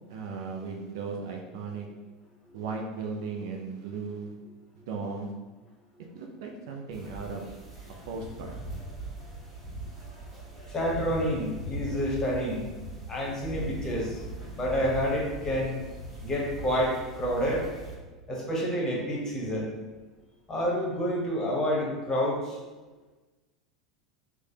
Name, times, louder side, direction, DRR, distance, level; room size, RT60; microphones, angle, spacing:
voice 1, 0.1-1.9 2.5-4.4 4.9-5.3 6.1-7.5 8.1-8.5, right 4 dB, 55° right, 1 dB, 0.4 m, -36 dB
sound 1, 6.9-18.0, right 2 dB, 10° right, 1.4 m, -40 dB
voice 2, 10.7-12.7 13.1-14.2 14.5-15.8 16.2-17.6 18.3-19.7 20.5-22.6, equal, 20° left, -3 dB, 0.8 m, -28 dB
3.1 x 2.1 x 2.8 m, 1.2 s
figure-of-eight pair, 80°, 3 cm